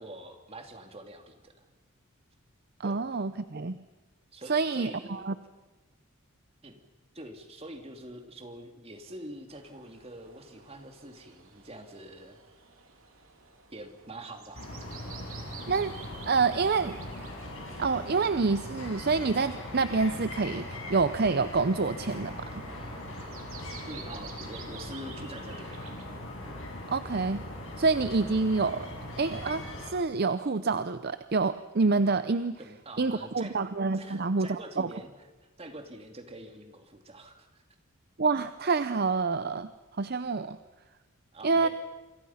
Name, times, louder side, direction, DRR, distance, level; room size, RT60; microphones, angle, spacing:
voice 1, 0.0-1.6 2.8-3.0 4.3-5.3 6.6-6.8 7.1-12.4 13.7-14.7 23.9-26.0 32.6-33.6 33.9-35.1 35.6-37.6 41.3-41.7, right 1 dB, 30° right, 5 dB, 2.4 m, -45 dB
voice 2, 2.8-3.8 4.5-5.3 15.7-15.9 16.3-17.0 17.8-22.6 26.9-27.4 27.8-28.9 29.2-32.6 33.0-34.9 38.2-39.7 40.0-40.6 41.4-41.7, right 4 dB, 45° right, 12 dB, 0.6 m, -27 dB
sound 1, 9.5-26.2, right 6 dB, 70° right, 3.2 m, -52 dB
sound 2, 14.5-29.9, left 1 dB, 65° left, 6.8 m, -40 dB
28.0 x 23.0 x 5.7 m, 1.2 s
head